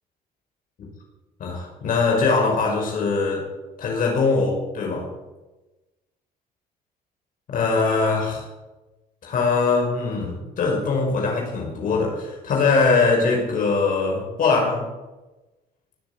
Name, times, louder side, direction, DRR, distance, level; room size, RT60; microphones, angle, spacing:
voice 1, 1.4-3.4 3.8-5.1 7.5-8.4 9.2-14.9, left 4 dB, 55° left, -1 dB, 5.3 m, -22 dB
19.0 x 7.8 x 8.6 m, 1.1 s
cardioid pair, 110°, 17 cm